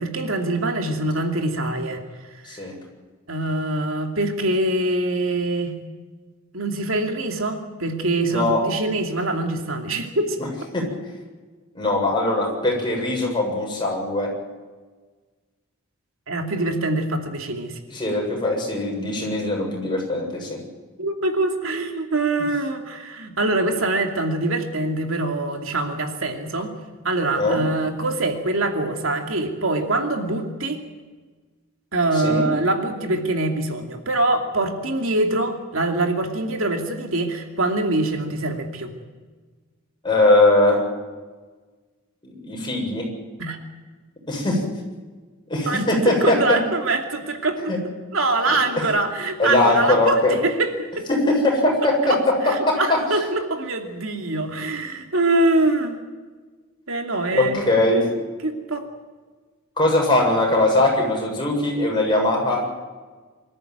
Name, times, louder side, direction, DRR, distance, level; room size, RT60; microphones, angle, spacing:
voice 1, 0.0-2.0 2.3-2.7 3.3-5.8 6.5-10.4 16.3-17.8 21.0-26.7 27.0-30.8 31.9-38.9 43.4-43.6 45.7-47.7 48.1-50.9 52.0-52.2 52.4-56.0 56.9-57.7 58.4-58.9, right 2 dB, 70° right, 4 dB, 2.6 m, -24 dB
voice 2, 8.3-8.6 10.4-10.5 10.7-10.8 11.7-14.3 17.9-20.6 27.4-27.6 32.1-32.4 40.0-40.8 42.2-43.0 44.3-44.6 45.5-46.6 47.7-47.8 48.5-48.6 49.4-50.4 51.1-52.3 52.7-52.8 57.3-58.0 59.8-62.7, left 2 dB, 20° left, -1 dB, 7.5 m, -20 dB
25.5 x 14.0 x 9.4 m, 1.4 s
head